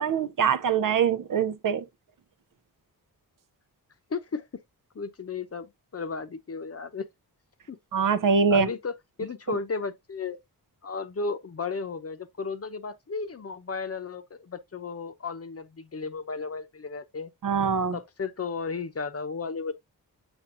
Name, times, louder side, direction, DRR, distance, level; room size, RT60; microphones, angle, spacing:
voice 1, 0.0-1.8 7.9-8.7 17.4-18.0, right 6 dB, 60° right, 0.6 m, -23 dB
voice 2, 4.1-4.6 4.9-7.1 7.7-7.8 8.5-10.4 10.8-17.3 17.9-19.7, left 4 dB, 40° left, 0.8 m, -34 dB
7.2 x 5.4 x 2.5 m
wide cardioid pair, 105°, 37 cm